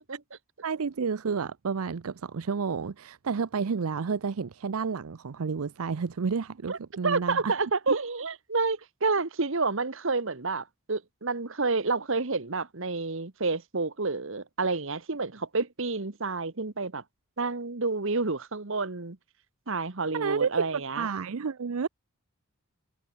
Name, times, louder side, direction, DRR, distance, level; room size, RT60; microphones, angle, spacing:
voice 1, 0.6-7.5 7.9-8.0 20.1-21.9, right 5 dB, 75° right, 0.5 m, -30 dB
voice 2, 7.0-17.0 17.4-19.2 19.7-21.1, right 3 dB, 60° right, 1.3 m, -29 dB
head